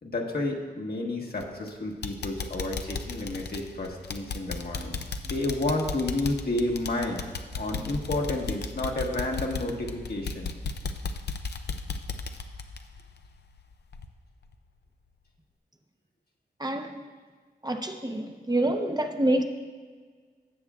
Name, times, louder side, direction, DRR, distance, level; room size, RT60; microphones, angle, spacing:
voice 1, 0.0-5.0 5.2-7.2 7.5-10.5, left 2 dB, 65° left, 1.3 m, -31 dB
sound 1, 1.4-1.7 2.0-13.6 13.9-14.1 14.5-14.6, left 4 dB, 80° left, 0.5 m, -35 dB
voice 2, 17.6-19.4, right 1 dB, 25° right, 0.7 m, -27 dB
16.5 x 7.1 x 2.4 m
wide cardioid pair, 65°, 17 cm